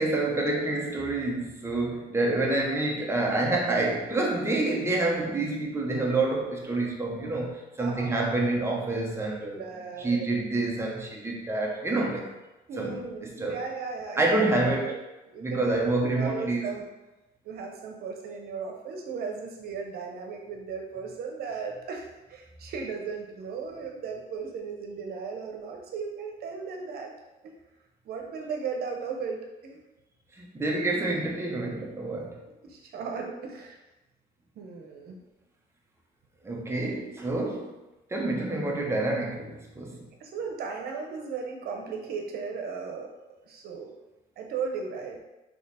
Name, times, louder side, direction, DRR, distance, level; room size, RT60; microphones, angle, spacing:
voice 1, 0.0-9.6 10.0-12.3 12.8-13.6 14.2-14.9 15.4-16.7 30.3-32.4 36.4-37.8 38.1-40.1, right 2 dB, 15° right, -1 dB, 1.0 m, -28 dB
voice 2, 7.8-8.3 9.5-10.5 12.7-15.0 15.3-16.9 17.4-27.1 27.4-27.5 28.0-29.8 32.6-33.8 34.6-35.2 40.2-43.1 43.4-43.9 44.4-45.2, right 5 dB, 65° right, 2 dB, 0.9 m, -36 dB
3.9 x 3.1 x 4.1 m, 1.0 s
cardioid pair, 110°, 17 cm